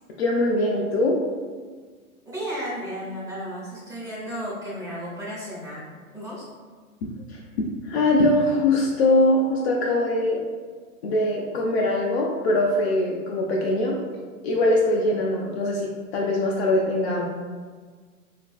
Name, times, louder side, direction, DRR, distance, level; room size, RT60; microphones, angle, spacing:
voice 1, 0.2-1.2 7.3-7.4 7.9-10.4 11.0-14.0 14.4-17.2, left 1 dB, 50° left, -2 dB, 0.4 m, -22 dB
voice 2, 2.2-6.5, equal, 10° right, -8 dB, 0.8 m, -34 dB
3.2 x 2.4 x 2.3 m, 1.5 s
hypercardioid pair, 120°, 44 cm